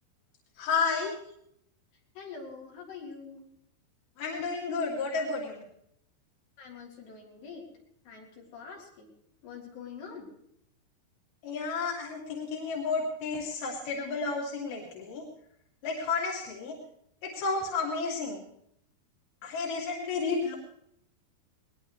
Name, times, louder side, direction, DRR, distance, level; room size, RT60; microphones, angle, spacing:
voice 1, 0.6-1.1 4.2-5.6 11.4-15.3 15.8-16.8 17.2-18.4 19.4-20.6, left 4 dB, 70° left, -2 dB, 4.5 m, -31 dB
voice 2, 2.2-3.5 6.6-7.7 8.1-9.1 9.4-10.3, left 5 dB, 85° left, -3 dB, 5.9 m, -45 dB
21.5 x 20.5 x 3.2 m, 0.72 s
omnidirectional pair, 4.7 m